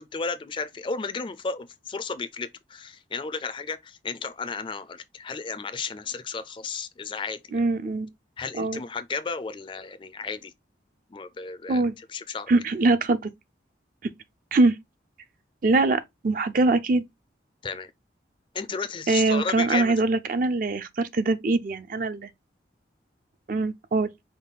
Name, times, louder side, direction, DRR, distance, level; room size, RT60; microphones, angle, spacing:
voice 1, 0.0-7.6 8.4-10.5 11.1-11.8 12.1-12.5 17.6-17.9 18.5-19.9, left 5 dB, 25° left, 0.4 m, -33 dB
voice 2, 7.5-8.1 8.6-8.8 11.7-11.9 12.5-13.3 14.0-14.1 14.5-14.8 15.6-17.0 19.1-22.3 23.5-24.1, right 3 dB, 50° right, 0.5 m, -23 dB
5.3 x 2.3 x 3.9 m
head